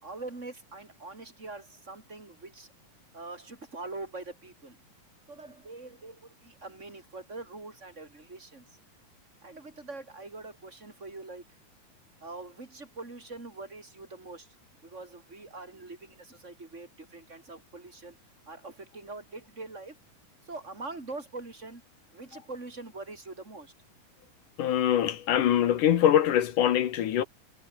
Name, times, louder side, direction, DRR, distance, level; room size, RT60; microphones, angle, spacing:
voice 1, 0.0-2.7 3.1-4.8 5.3-8.6 9.4-11.4 12.2-14.6 14.8-18.2 18.5-20.0 20.4-21.8 22.1-23.7, right 3 dB, 20° right, 4.3 m, -43 dB
voice 2, 24.6-27.2, left 10 dB, 70° left, 2.8 m, -23 dB
omnidirectional pair, 4.0 m